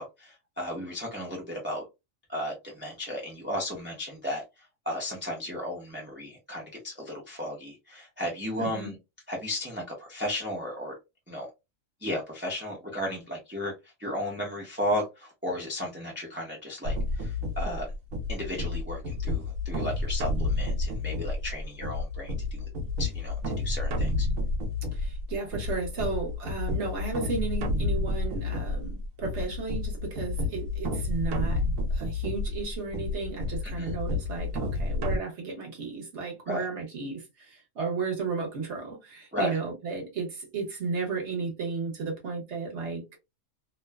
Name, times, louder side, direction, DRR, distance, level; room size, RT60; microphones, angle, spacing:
voice 1, 0.0-1.8 2.3-4.4 4.9-8.9 9.3-10.9 11.3-11.5 12.0-13.7 14.0-17.9 18.3-22.6 23.0-24.3 33.6-33.9 36.5-36.6 39.3-39.6, left 1 dB, 10° right, 0.6 m, -34 dB
voice 2, 8.6-8.9 24.9-31.6 31.9-43.2, right 4 dB, 60° right, 1.3 m, -34 dB
sound 1, 16.8-35.2, left 2 dB, 80° right, 1.1 m, -30 dB
3.0 x 2.1 x 2.2 m
omnidirectional pair, 1.4 m